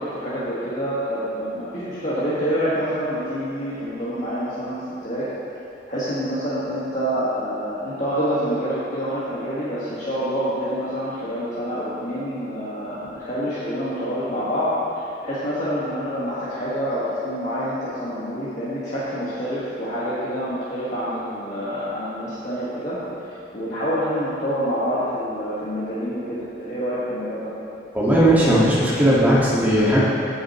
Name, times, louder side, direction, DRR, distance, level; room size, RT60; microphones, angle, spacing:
voice 1, 0.0-4.8 5.0-5.2 5.9-23.0 23.3-27.5, equal, 45° left, -11 dB, 1.6 m, -27 dB
voice 2, 27.9-30.0, right 1 dB, 10° right, -8 dB, 1.7 m, -17 dB
15.5 x 6.4 x 3.0 m, 2.7 s
head